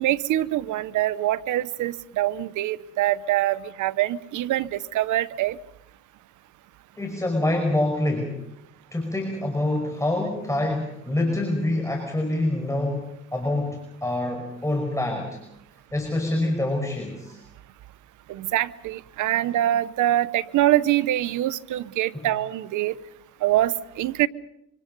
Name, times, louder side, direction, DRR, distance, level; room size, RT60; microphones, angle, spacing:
voice 1, 0.0-5.6 18.3-23.0 23.4-24.3, right 14 dB, 85° right, 16 dB, 1.0 m, -24 dB
voice 2, 7.0-8.4 8.9-15.4 15.9-17.4 22.1-22.3, left 1 dB, 10° left, 2 dB, 5.5 m, -26 dB
26.0 x 26.0 x 5.4 m, 0.82 s
cardioid pair, 90°, 30 cm